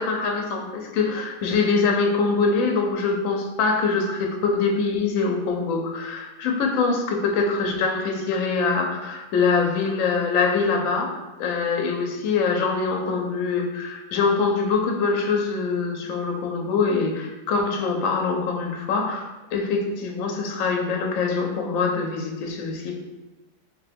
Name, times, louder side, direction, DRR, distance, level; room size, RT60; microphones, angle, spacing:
voice 1, 0.0-11.1 11.4-19.2 19.5-23.0, left 4 dB, 70° left, 1 dB, 0.9 m, -24 dB
3.6 x 2.2 x 3.3 m, 1.2 s
omnidirectional pair, 1.7 m